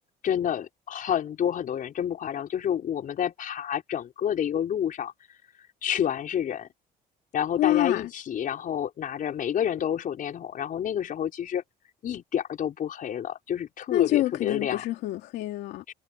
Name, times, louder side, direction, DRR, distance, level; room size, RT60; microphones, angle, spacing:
voice 1, 0.0-5.1 5.8-6.7 7.3-11.6 12.0-14.8 15.9-16.0, left 9 dB, 55° left, 5.3 m, -29 dB
voice 2, 7.6-8.1 13.9-15.9, left 15 dB, 85° left, 2.7 m, -26 dB
cardioid pair, 110°, 17 cm